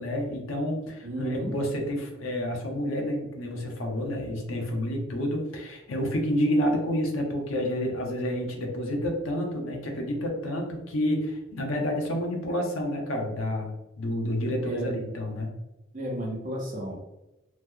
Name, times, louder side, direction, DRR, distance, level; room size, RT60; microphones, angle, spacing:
voice 1, 0.0-13.7 14.0-15.5, equal, 80° left, 1 dB, 0.7 m, -29 dB
voice 2, 1.0-1.5 14.6-15.0 15.9-17.0, equal, 40° right, -2 dB, 0.8 m, -33 dB
3.0 x 2.0 x 3.6 m, 0.97 s
head